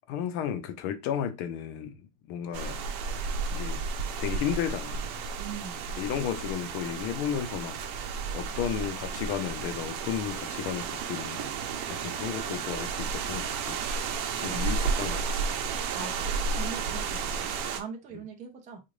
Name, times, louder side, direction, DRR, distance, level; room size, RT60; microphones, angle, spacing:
voice 1, 0.1-2.8 3.5-3.8 4.2-5.1 6.0-7.8 8.3-11.5 11.9-13.8 14.4-15.3, left 9 dB, 65° left, 0.8 m, -33 dB
sound 1, 2.5-17.8, right 5 dB, 65° right, 0.7 m, -32 dB
voice 2, 5.4-6.0 14.4-14.8 15.9-18.8, right 6 dB, 20° right, 0.3 m, -42 dB
3.7 x 2.5 x 3.1 m
cardioid pair, 165°, 49 cm